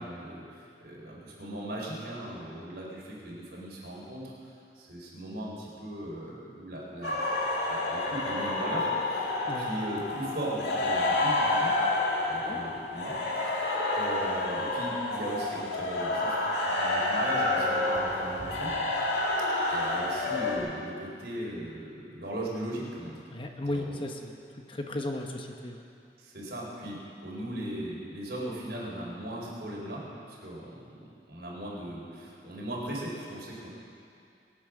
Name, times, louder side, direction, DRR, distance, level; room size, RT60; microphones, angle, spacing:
voice 1, 0.0-7.2 7.7-9.3 9.6-11.7 12.3-16.4 16.6-18.7 19.7-23.2 23.7-24.0 26.2-30.0 30.3-31.0 31.3-33.7, right 1 dB, 65° right, -4 dB, 4.6 m, -38 dB
sound 1, 7.0-20.6, left 2 dB, 85° left, 2.3 m, -29 dB
voice 2, 12.4-12.7 23.3-24.4 24.7-25.8, left 1 dB, 30° left, 3 dB, 1.0 m, -35 dB
22.5 x 8.7 x 6.5 m, 2.5 s
head